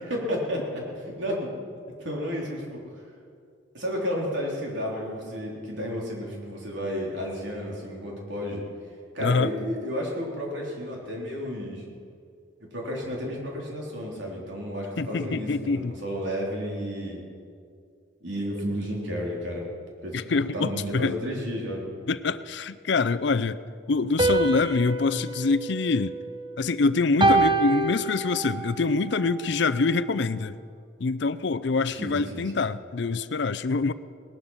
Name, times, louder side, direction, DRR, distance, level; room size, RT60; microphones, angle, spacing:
voice 1, 0.0-1.5 2.0-2.8 3.7-8.6 9.1-11.9 12.6-17.2 18.2-19.6 20.0-21.8 31.9-32.6, equal, 65° right, -2 dB, 3.5 m, -32 dB
voice 2, 9.2-9.5 15.0-15.9 20.1-21.2 22.1-23.6 23.9-26.2 26.6-30.6 31.0-33.9, left 4 dB, 60° left, 14 dB, 0.5 m, -25 dB
sound 1, 24.2-26.6 27.2-28.7, right 2 dB, 25° right, 0.8 m, -25 dB
19.0 x 12.0 x 5.6 m, 2.3 s
head